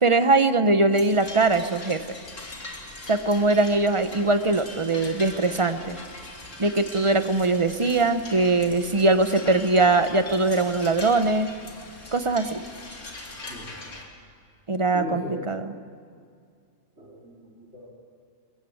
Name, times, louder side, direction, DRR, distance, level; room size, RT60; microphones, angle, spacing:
voice 1, 0.0-2.1 3.1-6.0 6.6-11.5 12.1-12.6 14.7-15.7, right 3 dB, 25° right, 10 dB, 0.8 m, -21 dB
sound 1, 0.9-14.0, left 2 dB, 70° left, 3.1 m, -41 dB
voice 2, 14.9-15.5 17.0-17.9, equal, 55° right, -5 dB, 4.2 m, -37 dB
28.5 x 15.0 x 8.7 m, 2.2 s
omnidirectional pair, 1.3 m